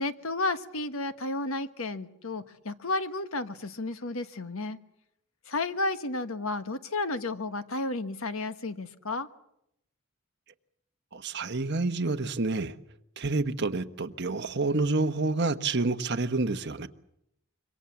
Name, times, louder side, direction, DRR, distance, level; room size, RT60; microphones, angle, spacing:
voice 1, 0.0-4.8 5.5-9.3, left 2 dB, 75° left, 1.4 m, -32 dB
voice 2, 11.1-12.7 13.2-16.9, right 3 dB, 55° right, 1.2 m, -28 dB
26.0 x 24.0 x 7.2 m
head